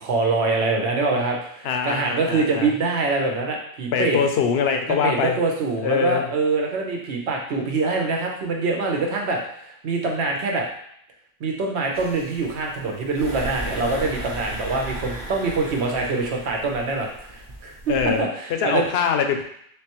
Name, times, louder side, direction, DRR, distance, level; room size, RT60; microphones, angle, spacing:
voice 1, 0.0-4.3 5.0-10.7 11.4-18.8, right 3 dB, 90° right, 0 dB, 1.0 m, -24 dB
voice 2, 1.6-2.7 3.9-5.4 5.8-6.3 17.9-18.2 18.6-19.4, left 6 dB, 75° left, 5 dB, 0.8 m, -23 dB
sound 1, 11.9-18.2, right 1 dB, 25° right, 0.5 m, -36 dB
3.6 x 3.3 x 2.9 m, 0.69 s
omnidirectional pair, 1.1 m